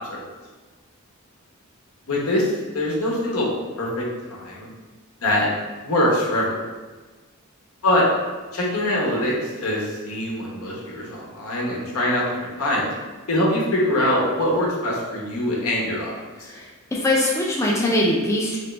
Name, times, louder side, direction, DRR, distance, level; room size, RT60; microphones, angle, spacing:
voice 1, 2.1-3.5 3.8-4.7 5.2-5.5 5.8-6.7 7.8-8.0 8.5-12.9 13.3-16.5, left 1 dB, 80° left, -3 dB, 0.9 m, -23 dB
voice 2, 16.4-18.6, left 1 dB, 15° left, -4 dB, 0.3 m, -22 dB
3.3 x 3.0 x 3.1 m, 1.3 s
head